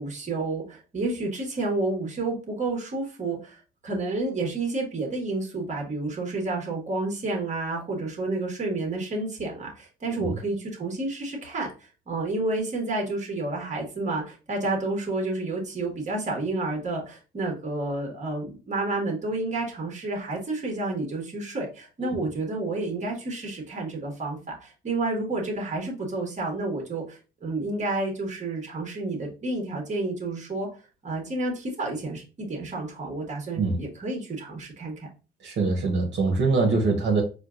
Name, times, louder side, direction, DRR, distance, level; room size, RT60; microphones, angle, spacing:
voice 1, 0.0-30.7 31.0-35.1, right 2 dB, 35° right, 1 dB, 1.4 m, -30 dB
voice 2, 35.4-37.2, right 3 dB, 65° right, -1 dB, 1.1 m, -23 dB
4.4 x 2.4 x 2.4 m, 0.33 s
cardioid pair, 90°, 20 cm